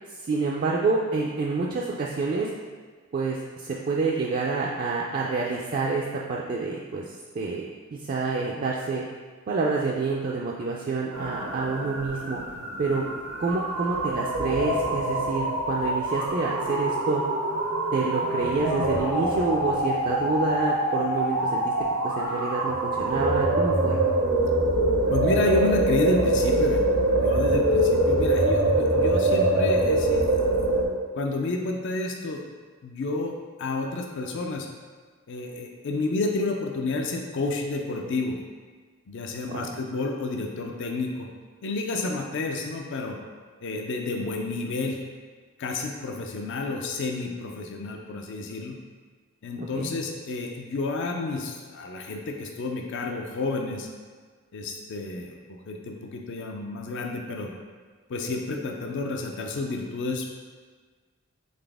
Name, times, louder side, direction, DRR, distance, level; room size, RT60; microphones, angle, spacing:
voice 1, 0.2-2.5 3.1-6.0 6.3-9.0 9.5-12.4 12.8-13.0 13.4-17.2 17.9-21.7 22.0-24.0 39.5-39.7 49.6-49.9, right 4 dB, 40° right, -3 dB, 0.3 m, -28 dB
sound 1, 11.1-30.8, right 1 dB, 85° right, 0.8 m, -24 dB
voice 2, 25.1-26.8 27.2-30.6 31.1-32.4 32.8-33.3 33.6-34.7 35.3-38.4 39.1-41.3 41.6-43.2 43.6-45.0 45.6-48.8 49.4-53.9 54.5-57.5 58.1-60.5, left 3 dB, 60° left, 2 dB, 0.4 m, -30 dB
4.1 x 3.5 x 3.4 m, 1.5 s
head